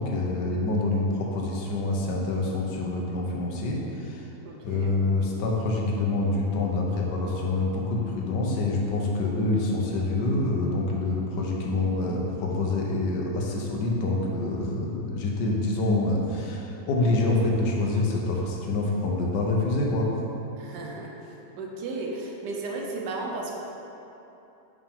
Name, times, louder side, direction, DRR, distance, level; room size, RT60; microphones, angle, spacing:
voice 1, 0.0-4.2 4.6-20.1, left 2 dB, 85° left, -2 dB, 1.4 m, -26 dB
voice 2, 4.4-5.0 20.6-21.1 21.6-23.6, right 3 dB, 80° right, -1 dB, 1.4 m, -34 dB
6.0 x 5.1 x 3.5 m, 2.9 s
omnidirectional pair, 1.8 m